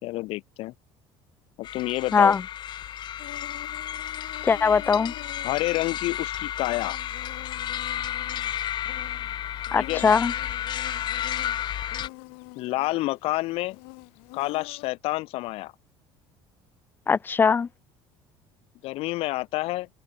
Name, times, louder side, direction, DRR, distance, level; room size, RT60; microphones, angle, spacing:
voice 1, 0.0-0.7 1.6-2.4 5.4-7.0 9.7-10.0 12.5-13.8 14.3-15.7 18.8-19.9, left 19 dB, 65° left, 1.3 m, -28 dB
sound 1, 1.6-12.1, left 11 dB, 45° left, 1.0 m, -32 dB
Insect, 3.2-14.9, left 40 dB or more, 85° left, 0.9 m, -46 dB
voice 2, 4.4-5.1 9.7-10.3 17.1-17.7, left 5 dB, 20° left, 0.3 m, -20 dB
cardioid pair, 120°, 11 cm